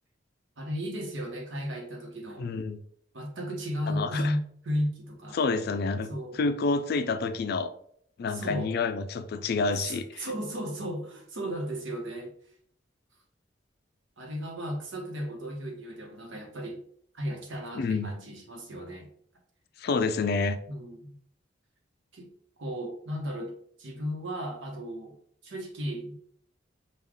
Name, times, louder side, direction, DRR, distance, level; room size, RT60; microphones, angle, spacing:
voice 1, 0.6-2.5 3.1-5.4 6.1-6.4 8.3-8.7 9.8-12.3 14.2-16.8 17.1-19.1 20.7-21.1 22.1-22.3 22.6-23.5 23.8-25.2 25.4-26.2, equal, 85° right, 2 dB, 1.1 m, -34 dB
voice 2, 2.4-2.8 3.9-4.3 5.3-6.1 6.4-7.7 8.2-10.3 17.7-18.1 19.8-20.6, left 4 dB, 55° left, 10 dB, 0.4 m, -28 dB
5.4 x 2.4 x 3.5 m, 0.63 s
head